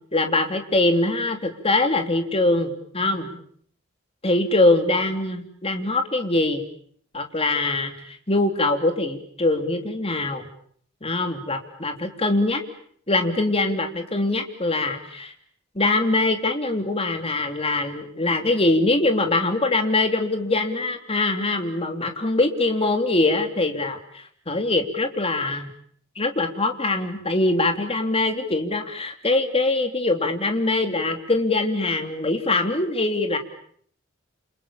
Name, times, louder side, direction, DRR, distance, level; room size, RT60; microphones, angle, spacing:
voice 1, 0.1-3.4 4.2-6.6 7.1-10.4 11.0-12.6 13.1-15.3 15.7-24.0 24.5-25.7 26.2-33.4, left 2 dB, 30° left, 5 dB, 3.3 m, -23 dB
29.0 x 28.5 x 7.1 m, 0.62 s
head